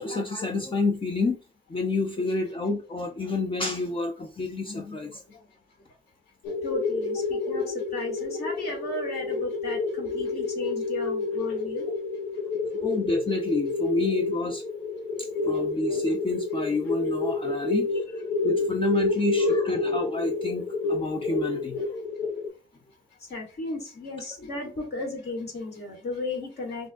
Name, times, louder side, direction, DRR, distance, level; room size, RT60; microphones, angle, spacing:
voice 1, 0.0-1.4 1.7-5.4 12.8-14.6 15.2-17.9 18.1-21.8, left 3 dB, 25° left, 2 dB, 0.6 m, -29 dB
sound 1, 6.4-22.5, left 3 dB, 90° left, 0.9 m, -29 dB
voice 2, 6.6-11.9 23.3-26.9, left 2 dB, 55° left, 0 dB, 2.2 m, -35 dB
5.9 x 2.5 x 2.4 m, 0.32 s
cardioid pair, 90°, 20 cm